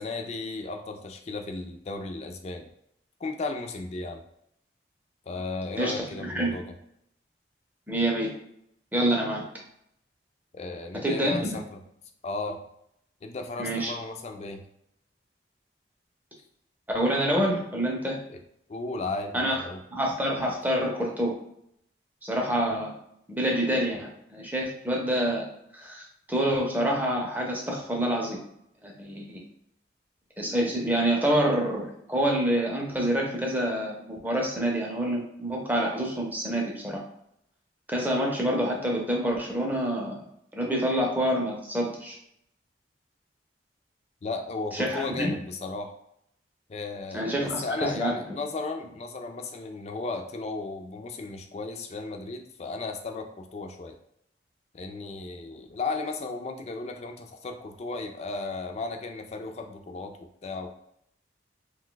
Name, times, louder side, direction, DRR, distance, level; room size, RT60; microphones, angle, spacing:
voice 1, 0.0-2.7 3.2-4.2 5.3-6.6 10.5-11.8 12.2-12.6 13.2-14.6 18.3-18.4 18.7-19.8 44.2-45.9 46.7-54.0 54.7-60.1 60.4-60.7, left 3 dB, 35° left, 5 dB, 0.4 m, -35 dB
voice 2, 6.2-6.6 7.9-8.3 8.9-9.5 10.9-11.6 13.6-13.9 16.9-18.2 19.3-19.6 19.9-21.4 22.2-22.9 23.3-25.5 25.7-28.4 28.8-29.4 30.4-37.0 37.9-40.2 40.5-42.2 44.7-45.4 47.1-48.1, right 1 dB, 10° right, -1 dB, 0.6 m, -27 dB
2.6 x 2.2 x 3.8 m, 0.74 s
head